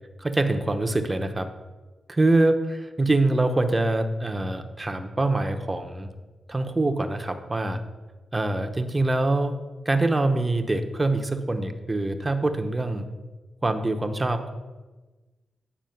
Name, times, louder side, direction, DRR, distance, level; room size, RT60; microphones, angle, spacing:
voice 1, 0.2-1.5 2.1-6.1 6.5-7.8 8.3-9.5 9.8-13.0 13.6-14.5, right 2 dB, 25° right, 6 dB, 0.9 m, -24 dB
9.2 x 4.3 x 5.8 m, 1.2 s
supercardioid pair, 50°, 0 cm